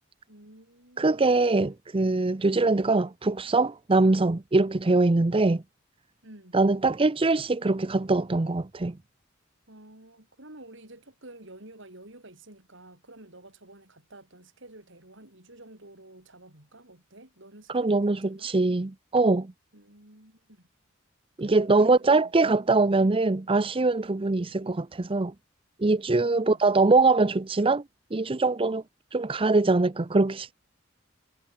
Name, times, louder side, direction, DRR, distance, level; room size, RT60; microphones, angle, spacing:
voice 1, 0.3-1.2 6.2-6.6 9.7-18.5 19.7-20.7 21.5-22.3 26.2-26.9, right 2 dB, 65° right, 6.9 m, -50 dB
voice 2, 1.0-5.6 6.5-9.0 17.7-19.5 21.4-25.3 25.8-27.8 28.1-28.8 29.1-30.5, right 3 dB, 25° right, 0.6 m, -23 dB
head